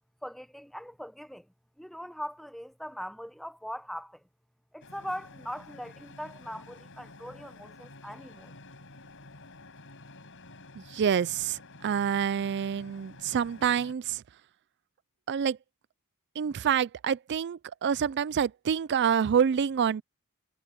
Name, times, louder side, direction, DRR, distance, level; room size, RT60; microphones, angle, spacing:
voice 1, 0.2-4.2 4.7-8.5, equal, ahead, 0.8 m, -41 dB
sound 1, 4.8-13.9, left 2 dB, 60° left, 7.0 m, -50 dB
voice 2, 10.8-14.2 15.3-15.6 16.4-20.0, right 7 dB, 50° right, 0.4 m, -27 dB
head